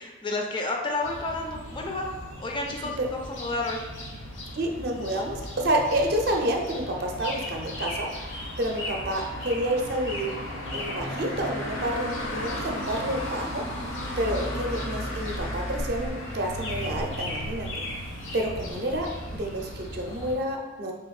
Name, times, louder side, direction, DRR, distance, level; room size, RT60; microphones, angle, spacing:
voice 1, 0.0-2.1 2.4-3.8, left 2 dB, 25° left, 1 dB, 0.3 m, -31 dB
sound 1, 1.0-20.4, equal, 90° left, 0.7 m, -35 dB
voice 2, 4.5-8.3 8.6-10.4 10.7-17.7 18.0-18.1 18.3-19.1 19.3-20.9, right 1 dB, 55° right, 2 dB, 0.5 m, -29 dB
3.4 x 2.4 x 3.1 m, 1.3 s
head